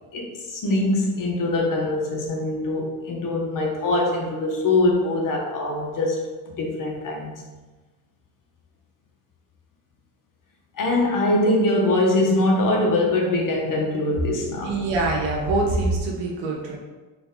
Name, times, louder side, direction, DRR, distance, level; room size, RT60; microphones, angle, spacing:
voice 1, 0.1-6.2 6.5-7.4 10.8-14.7, left 2 dB, 45° left, 0 dB, 1.2 m, -23 dB
voice 2, 14.6-16.8, right 2 dB, 75° right, -1 dB, 1.4 m, -24 dB
4.1 x 3.4 x 3.8 m, 1.2 s
supercardioid pair, 95°, 45 cm